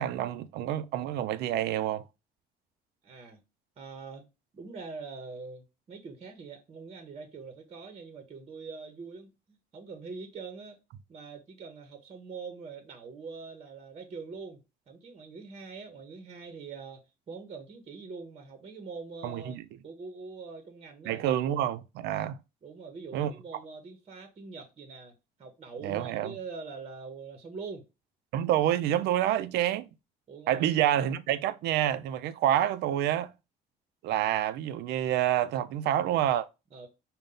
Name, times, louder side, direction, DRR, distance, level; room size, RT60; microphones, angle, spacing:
voice 1, 0.0-2.0 19.2-19.6 21.1-22.4 23.1-23.3 25.8-26.3 28.3-29.9 30.5-33.3 34.0-36.5, right 11 dB, 80° right, 0.4 m, -28 dB
voice 2, 3.0-3.4 3.8-4.3 4.5-9.3 9.7-10.8 11.1-14.6 14.9-21.4 22.6-25.1 25.4-27.8 30.3-31.0 36.7-36.9, right 4 dB, 40° right, 0.9 m, -43 dB
5.3 x 2.2 x 3.7 m
cardioid pair, 110°, 17 cm